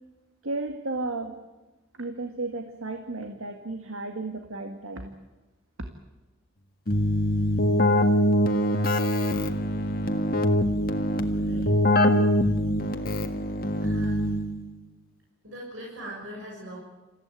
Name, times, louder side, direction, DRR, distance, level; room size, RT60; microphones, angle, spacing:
voice 1, 0.4-1.4 2.0-5.1, right 2 dB, 85° right, 5 dB, 1.9 m, -33 dB
Keyboard (musical), 6.9-14.7, left 1 dB, 45° left, 1.7 m, -23 dB
voice 2, 11.3-11.7 12.0-12.2 13.8-14.3 15.4-16.8, equal, 70° right, -2 dB, 6.8 m, -41 dB
27.5 x 15.5 x 9.2 m, 1.1 s
head